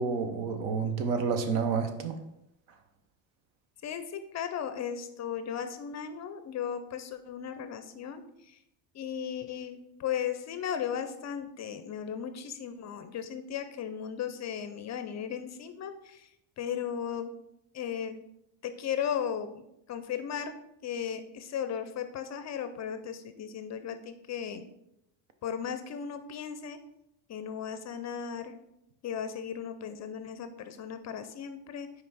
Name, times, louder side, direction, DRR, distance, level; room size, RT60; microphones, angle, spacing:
voice 1, 0.0-2.2, right 5 dB, 75° right, 7 dB, 1.0 m, -29 dB
voice 2, 3.8-8.6 8.9-16.3 16.6-17.3 17.7-18.2 18.6-20.5 20.8-24.7 25.4-26.8 27.3-28.6 29.0-32.0, left 8 dB, 35° left, 9 dB, 0.4 m, -36 dB
5.5 x 4.7 x 4.0 m, 0.82 s
cardioid pair, 130°, 49 cm